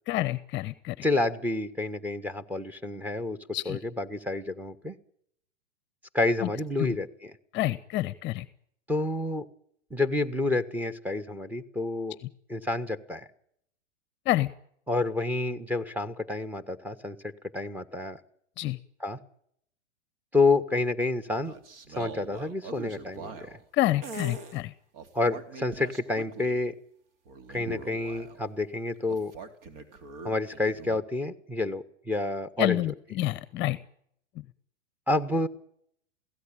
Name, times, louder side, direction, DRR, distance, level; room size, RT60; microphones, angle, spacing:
voice 1, 0.1-1.0 3.5-3.8 6.4-6.5 6.8-7.0 7.5-8.4 14.3-14.5 18.6-18.8 23.7-24.7 32.6-33.8, left 16 dB, 30° left, 17 dB, 0.9 m, -28 dB
voice 2, 1.0-3.4 3.6-4.9 6.1-7.3 8.9-9.5 9.9-12.2 12.5-13.3 14.9-18.2 19.0-19.2 20.3-21.5 21.9-23.5 25.1-26.7 27.5-29.3 30.2-32.8 35.1-35.5, left 2 dB, 5° right, 9 dB, 1.3 m, -29 dB
sound 1, 21.3-23.6 24.0-24.6 24.9-26.6 27.2-28.5 29.1-31.0, right 4 dB, 50° right, 3.2 m, -42 dB
23.0 x 16.5 x 8.9 m, 0.69 s
hypercardioid pair, 110°, 36 cm